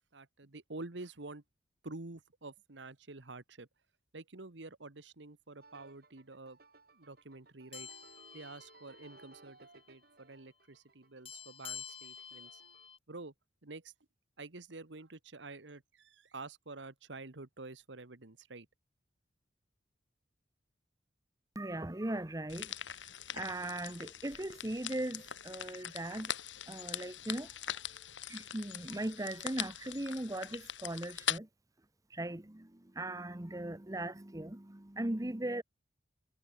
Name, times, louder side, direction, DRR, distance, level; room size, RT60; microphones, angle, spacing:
voice 1, 0.1-1.4 1.8-3.7 4.1-6.6 6.9-7.9 8.3-12.6 13.1-13.3 13.6-13.9 14.4-18.7, right 3 dB, 75° right, 1.5 m, -48 dB
sound 1, 5.6-12.9, right 3 dB, 55° right, 3.4 m, -61 dB
sound 2, 7.7-9.4 9.7-9.9 11.3-13.0, left 8 dB, 30° left, 5.7 m, -49 dB
voice 2, 21.5-23.1 23.3-26.3 26.7-28.0 28.3-31.5 32.1-35.6, right 1 dB, 20° right, 1.0 m, -39 dB
sound 3, 22.5-31.4, left 10 dB, 90° left, 3.2 m, -42 dB
head